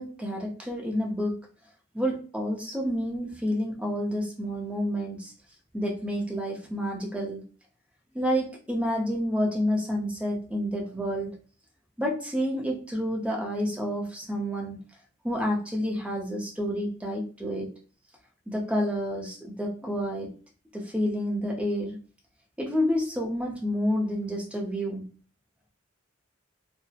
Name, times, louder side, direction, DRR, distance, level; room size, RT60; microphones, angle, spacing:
voice 1, 0.0-1.4 1.9-5.3 5.7-7.4 8.1-11.4 12.0-14.8 15.2-17.7 18.5-20.3 20.7-22.0 22.6-25.1, equal, 5° right, -1 dB, 0.5 m, -29 dB
2.6 x 2.0 x 2.4 m, 0.39 s
head